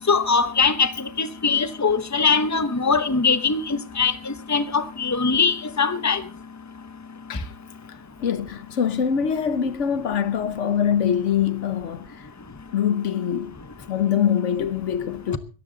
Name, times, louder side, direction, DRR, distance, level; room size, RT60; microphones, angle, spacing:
voice 1, 0.1-6.2, left 5 dB, 15° left, 0.9 m, -22 dB
voice 2, 8.2-12.1 12.7-13.6 13.9-15.4, left 8 dB, 90° left, 1.3 m, -23 dB
17.5 x 14.0 x 4.0 m
omnidirectional pair, 1.2 m